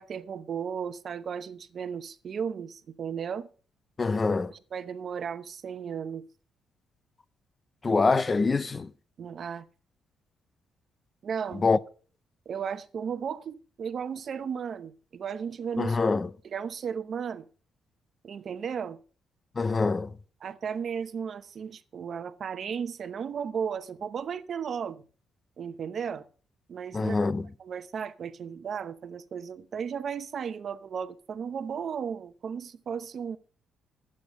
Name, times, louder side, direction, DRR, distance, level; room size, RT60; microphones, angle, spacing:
voice 1, 0.0-3.5 4.5-6.2 9.2-9.6 11.2-11.6 12.5-16.0 16.4-17.4 18.2-19.0 20.4-25.0 25.6-26.3 26.7-27.2 27.6-33.4, right 7 dB, 55° right, 0.8 m, -35 dB
voice 2, 4.0-4.5 7.8-8.9 11.6-11.8 15.8-16.3 19.6-20.1 26.9-27.4, left 4 dB, 30° left, 0.5 m, -24 dB
11.5 x 8.7 x 5.4 m
cardioid pair, 90°, 0 cm